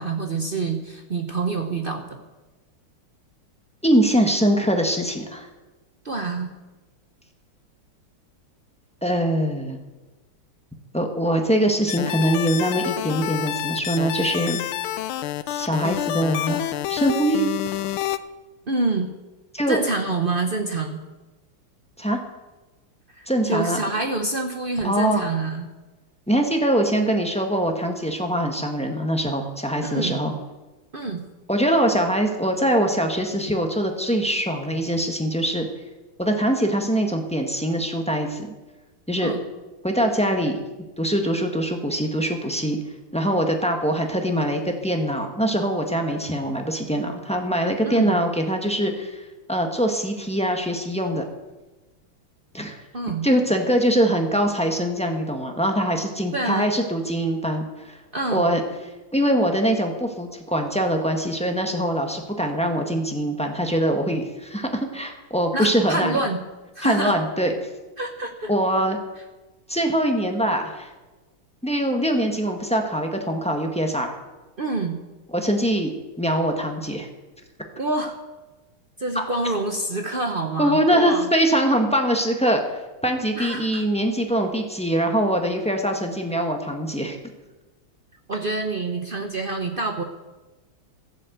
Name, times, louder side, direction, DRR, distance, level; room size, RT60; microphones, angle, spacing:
voice 1, 0.0-2.2 6.0-6.5 18.7-19.1 19.7-21.0 23.1-25.7 29.8-30.2 30.9-31.2 39.2-39.4 47.8-48.2 52.9-53.3 56.3-56.7 58.1-58.4 65.5-66.4 66.7-67.2 68.0-68.5 74.6-75.0 77.8-78.2 79.0-81.3 83.4-83.8 88.3-90.0, right 3 dB, 65° right, 4 dB, 0.5 m, -27 dB
voice 2, 3.8-5.5 9.0-9.8 10.9-14.6 15.5-17.5 19.5-19.8 22.0-22.2 23.3-23.8 24.8-25.2 26.3-30.3 31.5-35.7 36.2-38.5 39.1-39.3 39.8-40.6 41.0-42.8 43.1-49.2 49.5-51.2 52.5-52.8 53.2-58.0 58.3-58.6 59.1-66.2 66.8-67.5 68.5-69.0 69.7-70.9 71.6-74.1 75.3-75.9 76.2-77.1 79.1-79.2 80.6-87.2, equal, 5° left, 3 dB, 1.0 m, -23 dB
sound 1, 11.9-18.2, left 13 dB, 80° left, 1.4 m, -28 dB
14.0 x 7.7 x 7.9 m, 1.1 s
omnidirectional pair, 2.4 m